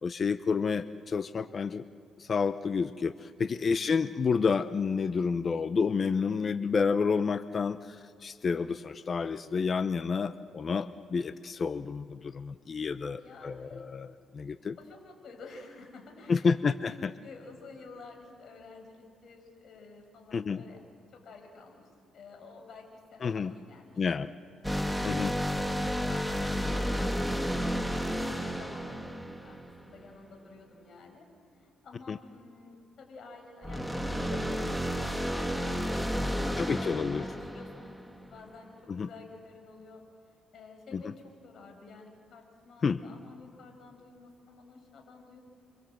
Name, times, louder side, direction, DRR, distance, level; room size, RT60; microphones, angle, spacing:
voice 1, 0.0-1.8 2.2-8.0 8.2-14.8 16.3-17.1 20.3-20.6 23.2-23.5 24.0-24.3 25.0-25.3 32.1-32.2 36.6-37.2 38.9-39.1 40.9-41.0 42.8-43.0, left 5 dB, 45° left, 12 dB, 0.7 m, -29 dB
voice 2, 3.5-4.0 13.2-13.8 14.8-16.6 16.9-20.8 21.1-24.0 24.7-31.3 31.6-40.0 40.5-45.4, left 3 dB, 60° left, 3 dB, 6.0 m, -51 dB
sound 1, 24.6-30.1 33.6-38.4, equal, ahead, 1.6 m, -32 dB
29.0 x 24.5 x 7.8 m, 2.2 s
cardioid pair, 90°, 0 cm